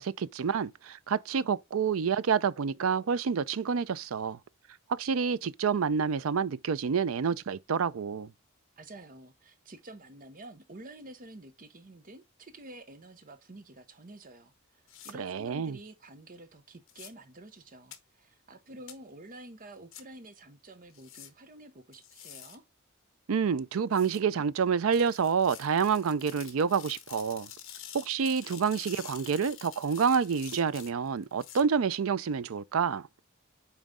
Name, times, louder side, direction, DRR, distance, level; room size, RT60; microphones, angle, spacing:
voice 1, 0.0-4.4 4.9-8.3 15.2-15.8 23.3-27.5 27.9-33.1, right 6 dB, 80° right, 0.4 m, -28 dB
voice 2, 8.8-22.6, right 2 dB, 40° right, 0.9 m, -49 dB
sound 1, 14.9-15.1 16.9-17.1 17.9-18.0 18.9-19.0 19.9-20.0 20.9-21.3 21.9-22.6 23.9-24.2 24.9-31.6, left 10 dB, 65° left, 1.2 m, -47 dB
8.9 x 3.1 x 3.6 m
head